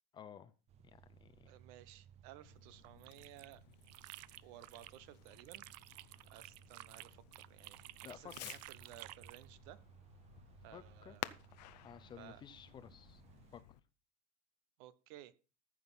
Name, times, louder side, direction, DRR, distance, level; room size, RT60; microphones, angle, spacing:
voice 1, 0.1-0.5 0.8-1.5 8.0-8.5 10.7-11.2 11.8-13.2 13.5-13.6, left 8 dB, 20° left, 0.6 m, -54 dB
sound 1, 0.7-13.6, right 9 dB, 30° right, 0.6 m, -63 dB
voice 2, 1.4-3.6 4.4-5.6 6.3-9.8 10.6-11.3 12.2-12.4 14.8-15.3, right 13 dB, 60° right, 0.9 m, -57 dB
Fireworks, 2.4-13.8, left 17 dB, 85° left, 0.7 m, -54 dB
sound 2, 2.8-5.0 5.3-9.5, right 18 dB, 80° right, 0.5 m, -53 dB
14.5 x 6.2 x 5.6 m
cardioid pair, 160°, 21 cm